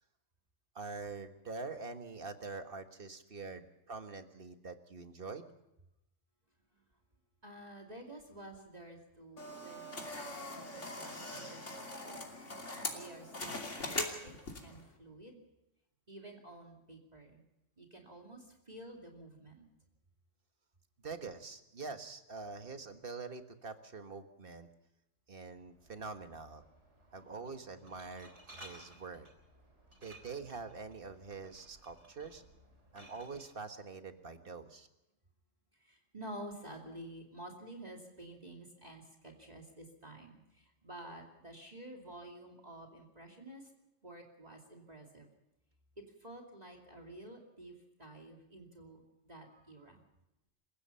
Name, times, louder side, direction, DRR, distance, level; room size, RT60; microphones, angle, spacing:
voice 1, 0.7-5.5 21.0-24.7 25.3-26.6 27.1-29.3 30.0-32.4 32.9-34.9, right 4 dB, 50° right, 7 dB, 1.7 m, -45 dB
voice 2, 7.4-12.2 12.9-14.3 14.6-15.4 16.1-17.4 17.8-19.6 35.8-43.7 44.0-45.3 46.0-50.0, right 1 dB, 35° right, 0 dB, 2.7 m, -51 dB
sound 1, 9.4-14.8, left 2 dB, 70° left, 3.3 m, -41 dB
Glass, 25.7-33.5, right 1 dB, 70° right, 4.1 m, -58 dB
28.5 x 16.0 x 5.7 m, 0.91 s
omnidirectional pair, 1.3 m